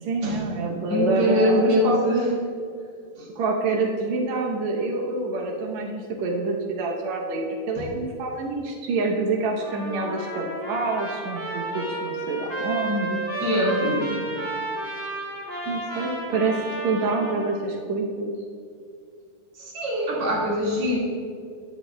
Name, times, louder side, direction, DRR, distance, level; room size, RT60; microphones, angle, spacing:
voice 1, 0.0-2.0 3.3-13.4 13.8-14.3 15.7-16.6 16.8-18.3, right 3 dB, 90° right, -1 dB, 1.5 m, -27 dB
voice 2, 0.9-2.3 3.2-3.3 13.4-13.8 19.6-21.0, equal, 45° right, -6 dB, 2.5 m, -23 dB
Trumpet, 9.6-17.6, right 1 dB, 20° right, 2.0 m, -32 dB
19.5 x 7.3 x 2.3 m, 2.3 s
omnidirectional pair, 4.5 m